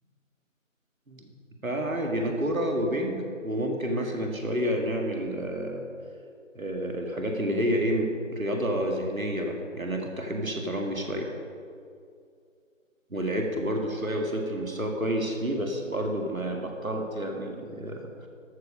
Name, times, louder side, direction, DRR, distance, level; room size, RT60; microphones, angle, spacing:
voice 1, 1.6-5.8 6.6-11.3 13.1-18.3, equal, 90° right, 2 dB, 1.9 m, -29 dB
13.0 x 6.8 x 5.5 m, 2.4 s
figure-of-eight pair, 160°, 40 cm